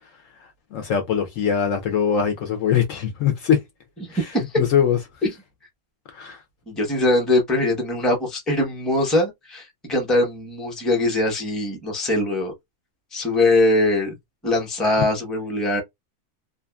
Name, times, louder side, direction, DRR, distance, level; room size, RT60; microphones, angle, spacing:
voice 1, 0.7-3.6 4.1-4.3 4.6-5.0 6.1-6.4, left 8 dB, 65° left, 0.9 m, -22 dB
voice 2, 4.0-4.6 5.2-5.3 6.7-12.5 13.1-14.1 14.4-15.8, left 2 dB, ahead, 0.6 m, -22 dB
2.7 x 2.4 x 2.2 m
omnidirectional pair, 1.6 m